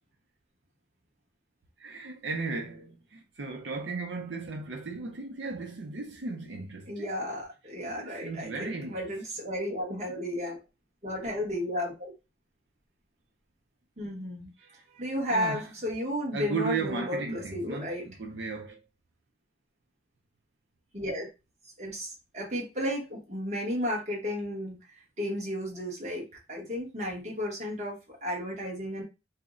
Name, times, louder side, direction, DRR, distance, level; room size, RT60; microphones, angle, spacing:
voice 1, 1.8-7.1 8.0-9.0 15.3-15.7 16.3-18.8, right 4 dB, 85° right, 0.6 m, -35 dB
voice 2, 6.9-10.6 11.0-12.1 14.0-14.5 14.9-18.1 20.9-21.3 21.8-24.8 25.2-29.0, equal, 40° right, 1.1 m, -33 dB
2.6 x 2.0 x 3.6 m
head